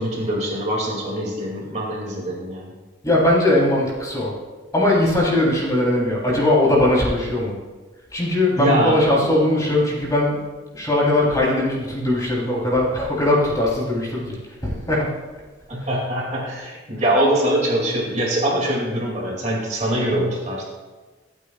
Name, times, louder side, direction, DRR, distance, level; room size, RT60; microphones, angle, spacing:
voice 1, 0.0-2.7 8.6-9.1 15.7-20.6, right 1 dB, 35° right, -2 dB, 2.4 m, -23 dB
voice 2, 3.0-4.3 4.7-7.5 8.1-10.4 10.7-14.4 14.6-15.1, left 1 dB, 20° left, -5 dB, 3.4 m, -19 dB
26.0 x 8.7 x 2.4 m, 1.3 s
head